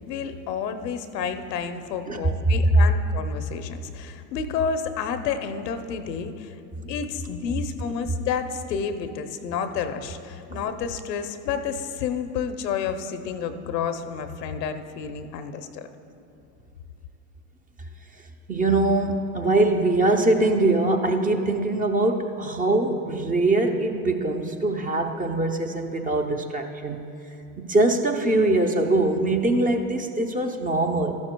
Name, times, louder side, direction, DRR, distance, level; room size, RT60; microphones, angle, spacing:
voice 1, 0.1-6.5 6.9-15.9, left 6 dB, 85° left, 8 dB, 0.8 m, -30 dB
voice 2, 18.5-27.0 27.6-31.1, right 2 dB, 15° right, 4 dB, 0.6 m, -22 dB
13.5 x 11.5 x 2.2 m, 2.7 s
hypercardioid pair, 95°, 48 cm